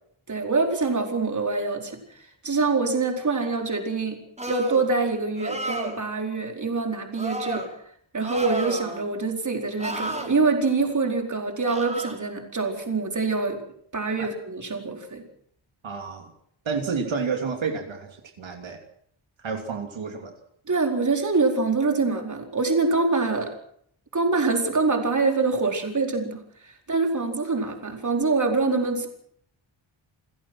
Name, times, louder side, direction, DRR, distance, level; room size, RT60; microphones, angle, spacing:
voice 1, 0.3-7.7 8.1-13.6 13.9-15.2 20.7-23.5 24.1-29.1, right 3 dB, 40° right, 3 dB, 4.4 m, -25 dB
sound 1, 4.4-4.9 5.4-6.0 7.1-7.7 8.2-9.1 9.8-10.3 11.7-12.2, right 1 dB, 15° right, 5.4 m, -32 dB
voice 2, 15.8-16.3 16.6-18.8 19.4-20.3, right 5 dB, 70° right, 4 dB, 3.1 m, -30 dB
29.0 x 16.0 x 6.2 m, 0.66 s
wide cardioid pair, 115°, 47 cm